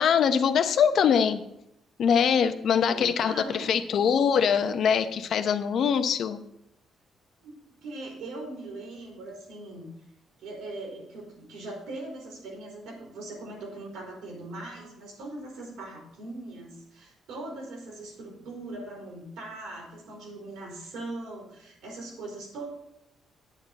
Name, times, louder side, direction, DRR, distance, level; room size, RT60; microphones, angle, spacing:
voice 1, 0.0-1.4 2.0-6.4, left 7 dB, 65° left, 9 dB, 0.8 m, -23 dB
voice 2, 2.9-3.8 7.4-9.9 10.4-22.7, right 2 dB, 90° right, -2 dB, 4.3 m, -40 dB
9.3 x 8.4 x 4.1 m, 0.81 s
cardioid pair, 90°, 0 cm